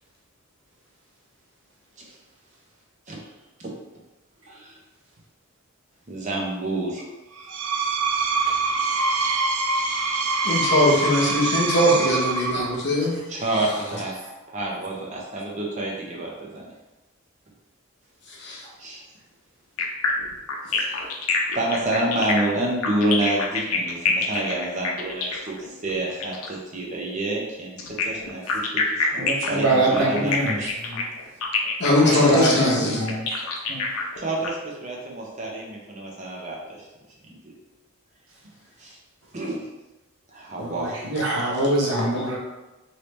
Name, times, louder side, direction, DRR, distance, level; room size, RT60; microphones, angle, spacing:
voice 1, 4.4-4.8 6.1-7.1 8.5-8.6 12.6-12.7 13.3-14.2 14.5-16.7 18.8-19.0 20.8-21.2 21.5-30.7 32.0-33.0 34.2-36.9 37.2-37.5 38.8-39.0 39.3-39.7 40.3-41.0, right 1 dB, 35° right, -2 dB, 0.6 m, -29 dB
Screech, 7.4-12.8, right 3 dB, 75° right, 0.4 m, -24 dB
voice 2, 10.4-13.2 18.4-18.6 31.8-33.0 41.6-41.7, left 1 dB, 50° left, -4 dB, 0.9 m, -20 dB
sound 1, 19.8-26.6 27.8-34.5, left 5 dB, 80° left, 0.5 m, -27 dB
voice 3, 29.1-31.0 32.0-33.4 33.7-33.8 40.6-42.4, right 2 dB, 60° right, -4 dB, 0.9 m, -24 dB
3.2 x 2.8 x 3.1 m, 1.0 s
head